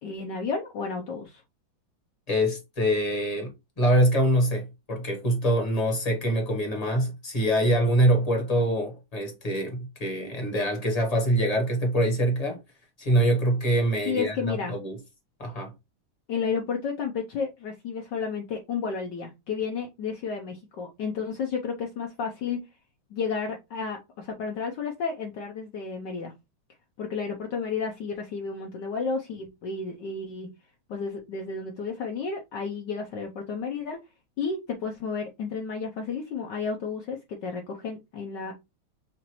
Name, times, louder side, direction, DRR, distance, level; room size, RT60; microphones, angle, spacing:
voice 1, 0.0-1.4 14.1-14.7 16.3-22.6 23.1-26.3 27.0-30.5 30.9-34.0 34.4-38.5, left 5 dB, 65° left, 1.3 m, -32 dB
voice 2, 2.3-3.5 3.8-12.6 13.0-15.0 15.4-15.7, right 1 dB, 25° left, 1.0 m, -24 dB
6.0 x 2.5 x 2.9 m
omnidirectional pair, 2.3 m